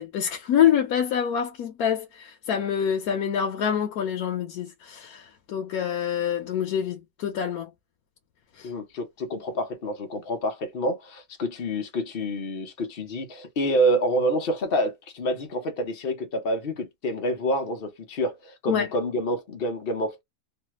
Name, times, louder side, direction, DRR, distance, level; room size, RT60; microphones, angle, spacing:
voice 1, 0.0-7.7 8.6-8.7 18.7-18.9, left 9 dB, 85° left, 1.2 m, -26 dB
voice 2, 8.6-20.2, equal, 45° left, 0.9 m, -27 dB
3.2 x 2.2 x 2.9 m
omnidirectional pair, 1.5 m